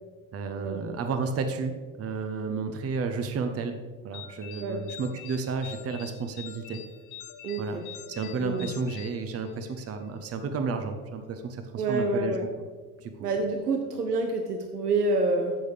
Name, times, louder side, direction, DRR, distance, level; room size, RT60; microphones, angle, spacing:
voice 1, 0.3-3.8 4.0-6.8 7.6-7.8 8.1-12.4 13.0-13.1, right 4 dB, 30° right, 7 dB, 1.0 m, -32 dB
sound 1, 4.1-9.9, left 11 dB, 55° left, 1.2 m, -45 dB
voice 2, 7.4-7.8 8.4-8.7 11.8-12.4 13.2-15.6, right 2 dB, 80° right, 4 dB, 0.8 m, -27 dB
15.0 x 6.6 x 3.5 m, 1.5 s
figure-of-eight pair, 60°, 46 cm